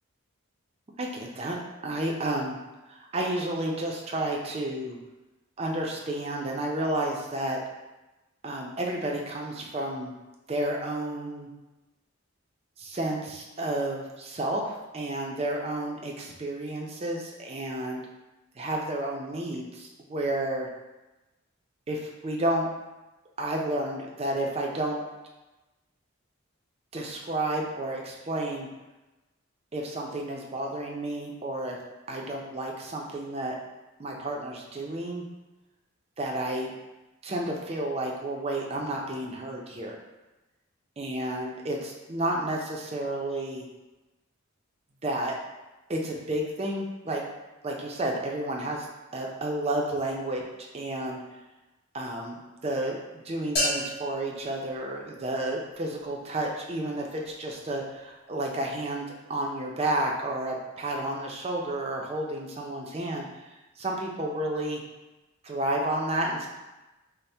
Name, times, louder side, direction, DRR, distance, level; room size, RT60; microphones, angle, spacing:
voice 1, 1.0-1.6 1.8-2.6 2.9-5.0 5.6-7.6 8.4-10.1 10.5-11.5 12.8-18.0 18.6-20.7 21.9-22.7 23.4-25.0 26.9-28.7 29.7-31.8 32.1-33.6 34.0-35.2 36.2-36.7 37.2-40.0 41.0-43.6 45.0-45.4 45.9-47.2 47.6-48.9 49.1-50.4 50.7-51.2 51.9-63.3 63.8-64.8 65.4-66.5, right 1 dB, 30° right, 0 dB, 0.4 m, -31 dB
sound 1, 53.6-55.5, left 1 dB, 50° left, 1.0 m, -32 dB
4.2 x 2.0 x 3.3 m, 1.1 s
head